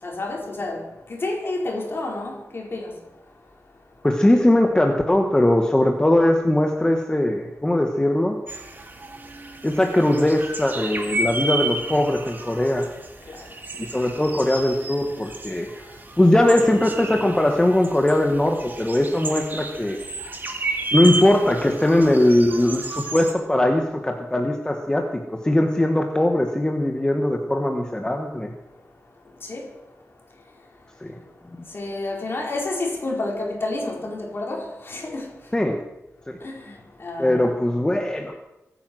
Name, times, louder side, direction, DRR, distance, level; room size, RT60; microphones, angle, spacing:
voice 1, 0.0-2.9 13.3-13.5 29.4-29.7 31.7-35.3 36.4-37.4, left 2 dB, 45° left, 4.5 m, -30 dB
voice 2, 4.0-8.4 9.6-12.9 13.8-15.9 16.2-20.0 20.9-28.5 31.0-31.2 35.5-35.8 36.3-36.4 37.2-38.3, left 1 dB, 15° left, 1.3 m, -20 dB
sound 1, 8.5-23.3, right 2 dB, 40° right, 2.2 m, -32 dB
23.5 x 9.3 x 6.3 m
wide cardioid pair, 120°, 5 cm